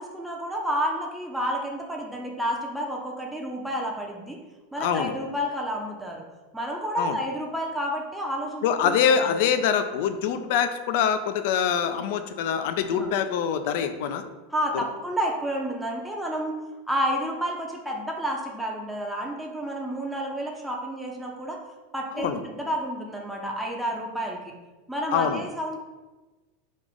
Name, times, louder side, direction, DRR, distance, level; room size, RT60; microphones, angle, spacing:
voice 1, 0.0-4.4 4.7-6.2 6.5-9.2 10.3-10.4 12.9-13.1 14.5-16.6 16.9-21.6 21.9-24.5 24.9-25.8, equal, 5° right, -1 dB, 0.6 m, -30 dB
voice 2, 4.8-5.1 7.0-7.2 8.6-14.2 14.7-14.8 22.2-22.4 25.1-25.4, left 8 dB, 60° left, 9 dB, 0.3 m, -24 dB
3.5 x 2.5 x 3.6 m, 1.2 s
hypercardioid pair, 95°, 0 cm